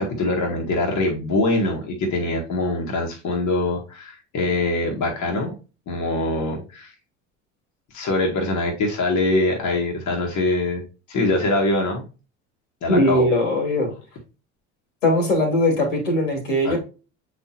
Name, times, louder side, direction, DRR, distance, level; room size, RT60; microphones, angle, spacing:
voice 1, 0.0-5.5 5.9-6.9 7.9-12.0 12.8-13.3 16.6-16.8, left 2 dB, 50° left, 0 dB, 1.8 m, -23 dB
voice 2, 12.9-13.9 15.0-16.8, left 1 dB, 85° left, 0 dB, 2.7 m, -20 dB
8.0 x 4.3 x 2.9 m, 0.33 s
hypercardioid pair, 60°, 37 cm